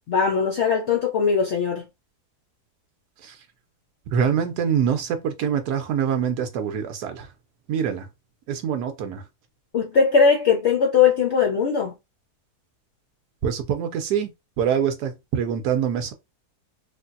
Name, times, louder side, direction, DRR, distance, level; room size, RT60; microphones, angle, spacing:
voice 1, 0.1-1.8 9.7-11.9, left 6 dB, 60° left, 0.7 m, -20 dB
voice 2, 4.1-7.3 7.7-8.1 8.5-9.2 13.4-16.1, right 8 dB, 80° right, 1.1 m, -25 dB
3.3 x 2.5 x 2.5 m
omnidirectional pair, 1.7 m